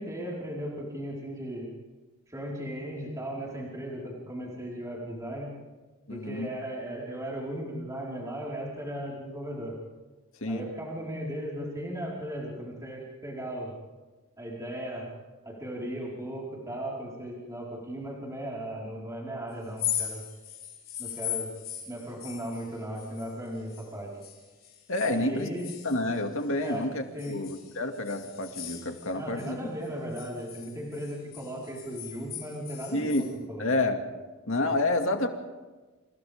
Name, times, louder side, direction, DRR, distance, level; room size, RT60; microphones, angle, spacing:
voice 1, 0.0-1.7 2.3-5.5 6.1-9.7 10.5-13.7 14.4-15.1 15.4-20.2 21.0-21.5 21.9-24.1 25.0-25.7 26.6-26.8 27.1-27.4 29.1-33.7, equal, 15° right, -5 dB, 4.9 m, -37 dB
voice 2, 6.1-6.5 10.4-10.6 24.9-25.5 25.8-29.6 32.9-34.2 34.5-35.3, left 2 dB, 65° left, 4 dB, 2.3 m, -29 dB
sound 1, 19.6-23.9 24.2-26.7 27.2-29.5 29.8-33.3, left 10 dB, 40° left, 4.5 m, -39 dB
28.5 x 28.5 x 3.7 m, 1.2 s
head